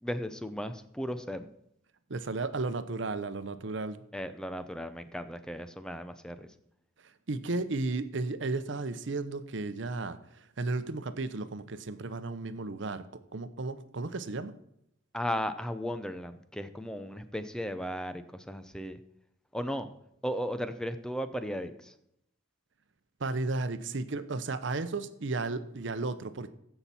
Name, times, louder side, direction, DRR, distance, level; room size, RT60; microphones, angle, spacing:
voice 1, 0.0-1.5 4.1-6.5 15.1-19.0 19.5-19.9 20.2-21.9, equal, 5° left, 10 dB, 0.5 m, -36 dB
voice 2, 2.1-4.0 7.3-13.1 13.3-14.5 23.2-26.5, right 3 dB, 65° right, 12 dB, 0.7 m, -34 dB
15.0 x 5.8 x 4.2 m, 0.76 s
head